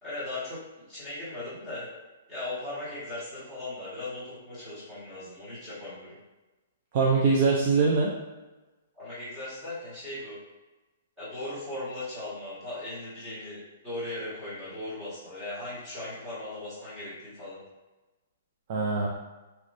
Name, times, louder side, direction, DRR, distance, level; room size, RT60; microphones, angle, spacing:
voice 1, 0.0-1.8 2.3-6.2 9.0-10.4 11.2-13.6 13.8-17.6, left 2 dB, 10° right, -13 dB, 1.5 m, -38 dB
voice 2, 6.9-8.1 18.7-19.1, right 4 dB, 30° right, -3 dB, 0.3 m, -23 dB
3.0 x 2.9 x 2.5 m, 1.2 s
hypercardioid pair, 175°, 0 cm